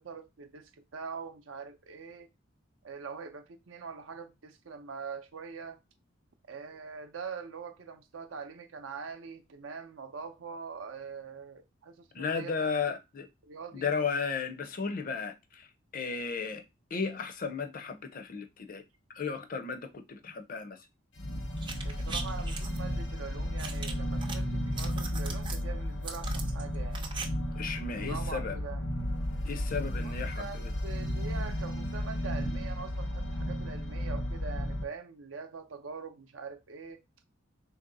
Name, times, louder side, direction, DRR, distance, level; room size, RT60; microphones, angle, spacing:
voice 1, 0.0-2.3 2.8-5.8 6.5-12.6 13.4-13.9 21.8-27.1 27.9-28.8 30.0-37.0, right 5 dB, 85° right, 0.6 m, -43 dB
voice 2, 12.1-13.3 13.7-15.7 15.9-16.6 16.9-18.8 19.1-20.9 27.6-28.6 29.4-30.7, left 5 dB, 45° left, 0.5 m, -34 dB
sound 1, 21.2-34.8, equal, 80° left, 0.9 m, -34 dB
sound 2, 21.6-22.8 23.6-24.4 24.7-25.6 26.0-27.3 27.5-27.6, right 5 dB, 25° right, 0.4 m, -40 dB
3.0 x 2.6 x 3.8 m
head